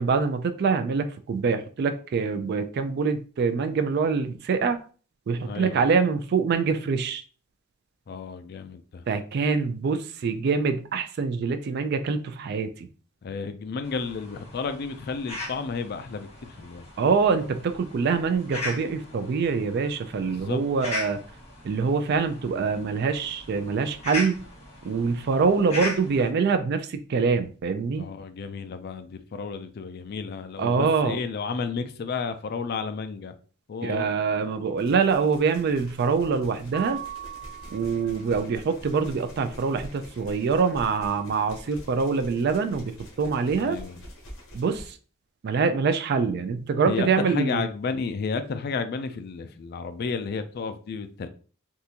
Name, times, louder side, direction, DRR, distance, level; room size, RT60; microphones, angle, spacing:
voice 1, 0.0-4.8 5.3-7.2 9.1-12.9 17.0-21.2 21.6-24.5 24.8-28.1 30.6-31.2 33.8-37.0 37.7-43.8 44.5-45.0 45.4-47.6, right 5 dB, 55° right, 0.3 m, -25 dB
voice 2, 5.4-5.8 8.1-9.0 13.2-16.9 20.2-20.7 28.0-33.3 33.7-34.1 43.6-44.0 46.9-51.3, left 5 dB, 50° left, 0.4 m, -32 dB
sound 1, 13.8-26.3, left 2 dB, 35° left, 1.2 m, -38 dB
sound 2, 34.8-44.9, equal, 80° left, 1.0 m, -45 dB
Mallet percussion, 36.7-38.5, right 10 dB, 70° right, 1.3 m, -39 dB
3.6 x 2.5 x 2.8 m
head